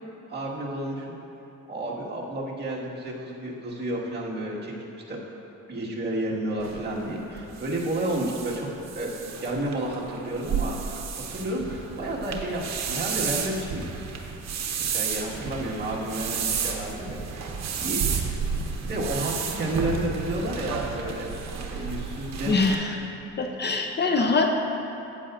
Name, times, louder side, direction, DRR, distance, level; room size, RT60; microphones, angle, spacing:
voice 1, 0.3-1.1 1.7-5.2 5.7-9.1 9.4-11.1 11.3-14.1 14.8-17.5 17.8-18.4 18.8-21.3 21.7-22.6, right 1 dB, 35° right, -4 dB, 1.8 m, -31 dB
sound 1, 6.6-22.8, right 6 dB, 60° right, 1.0 m, -32 dB
voice 2, 22.5-23.0 23.4-24.5, left 3 dB, 35° left, 3 dB, 0.6 m, -23 dB
12.5 x 8.9 x 2.5 m, 2.9 s
cardioid pair, 90°, 30 cm